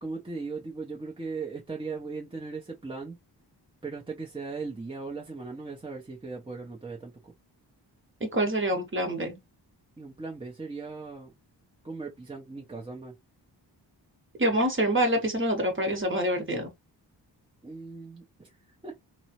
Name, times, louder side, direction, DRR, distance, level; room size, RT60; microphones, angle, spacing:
voice 1, 0.0-3.2 3.8-7.3 10.0-11.3 11.8-13.1 17.6-18.5 18.8-18.9, right 4 dB, 10° right, 0.6 m, -38 dB
voice 2, 8.2-9.3 14.4-16.7, right 1 dB, 30° right, 1.0 m, -26 dB
3.0 x 2.0 x 2.8 m
wide cardioid pair, 110°, 43 cm